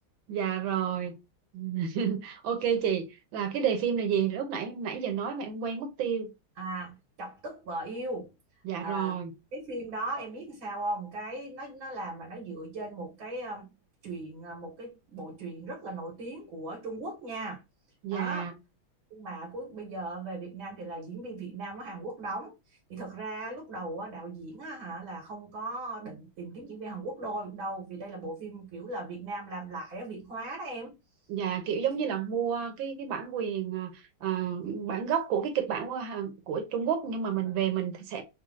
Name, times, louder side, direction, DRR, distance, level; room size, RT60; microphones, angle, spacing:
voice 1, 0.3-1.1 1.5-6.3 8.6-9.3 18.0-18.5 31.3-38.2, right 8 dB, 75° right, 1.6 m, -30 dB
voice 2, 6.6-8.3 8.8-9.2 9.5-13.7 14.0-17.6 18.1-18.5 19.1-31.0 37.4-37.6, right 2 dB, 90° right, 2.3 m, -38 dB
4.4 x 2.3 x 3.7 m
omnidirectional pair, 2.2 m